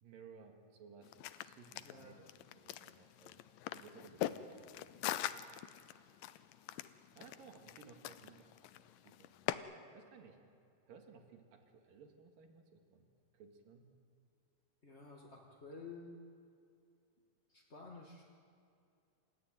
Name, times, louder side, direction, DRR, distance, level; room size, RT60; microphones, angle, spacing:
voice 1, 0.0-2.3 2.5-3.4 3.7-4.9 7.1-10.4 10.9-13.1 13.3-13.9, right 5 dB, 80° right, 3 dB, 3.7 m, -59 dB
sound 1, 1.0-9.5, left 14 dB, 85° left, 2.4 m, -43 dB
voice 2, 1.8-2.1 14.8-16.2 17.5-18.2, left 3 dB, 25° left, -2 dB, 1.5 m, -52 dB
28.5 x 13.5 x 9.0 m, 2.5 s
omnidirectional pair, 4.0 m